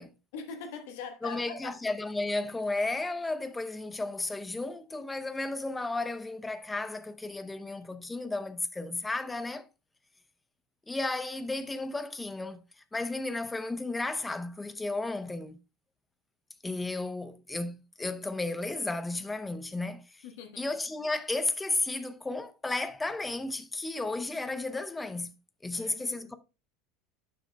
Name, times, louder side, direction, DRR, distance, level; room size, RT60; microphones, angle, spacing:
voice 1, 0.3-1.8 20.2-20.6 25.7-26.3, left 5 dB, 65° left, 1.2 m, -42 dB
voice 2, 1.2-9.7 10.9-12.6 12.9-15.6 16.6-20.2 20.6-25.4 25.6-26.4, left 2 dB, 10° left, 0.7 m, -33 dB
10.5 x 6.1 x 2.2 m
figure-of-eight pair, 75°, 0 cm